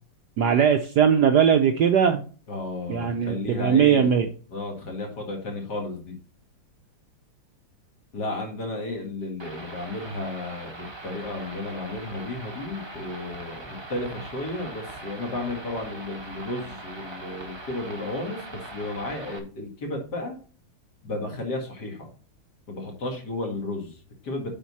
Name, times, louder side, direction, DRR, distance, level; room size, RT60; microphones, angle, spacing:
voice 1, 0.4-2.2 2.9-4.3, right 8 dB, 65° right, 6 dB, 1.1 m, -20 dB
voice 2, 2.5-4.0 4.5-6.2 8.1-20.4 21.0-22.1 22.7-24.5, left 2 dB, 50° left, 2 dB, 2.5 m, -33 dB
sound 1, 9.4-19.4, right 2 dB, 20° right, 0.8 m, -41 dB
9.4 x 4.3 x 4.1 m, 0.38 s
omnidirectional pair, 2.3 m